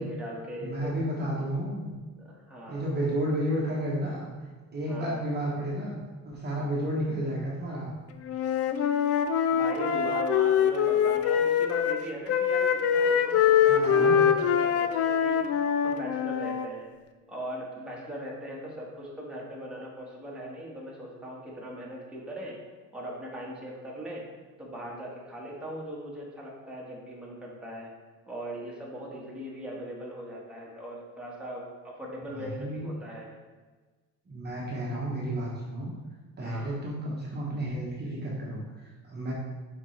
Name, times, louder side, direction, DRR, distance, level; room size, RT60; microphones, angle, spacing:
voice 1, 0.0-0.9 2.2-2.9 4.9-5.2 9.5-15.4 15.8-16.9 17.3-22.6 22.9-24.3 24.6-27.9 28.3-33.3 36.4-36.8, equal, 5° right, -5 dB, 1.5 m, -39 dB
voice 2, 0.6-1.9 2.7-4.3 4.7-6.0 6.2-7.9 11.1-11.2 13.6-14.2 32.3-33.0 34.3-35.9 36.4-39.3, right 1 dB, 30° right, -5 dB, 1.1 m, -32 dB
Wind instrument woodwind instrument, 8.3-12.0 12.3-16.7, left 8 dB, 45° left, 0.5 m, -24 dB
6.6 x 4.5 x 3.2 m, 1.3 s
cardioid pair, 115°, 35 cm